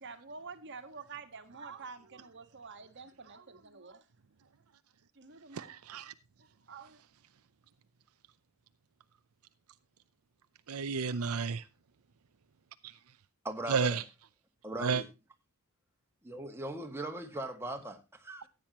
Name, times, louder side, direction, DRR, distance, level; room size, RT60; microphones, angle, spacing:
voice 1, 0.0-4.1 5.1-5.7 6.4-7.0, right 4 dB, 55° right, 1.5 m, -48 dB
voice 2, 5.5-6.1 10.7-11.6 13.7-14.0 14.8-15.0, right 5 dB, 75° right, 0.6 m, -31 dB
voice 3, 13.4-14.0 14.6-15.1 16.2-18.5, right 1 dB, 10° right, 1.8 m, -39 dB
15.0 x 9.0 x 2.9 m
head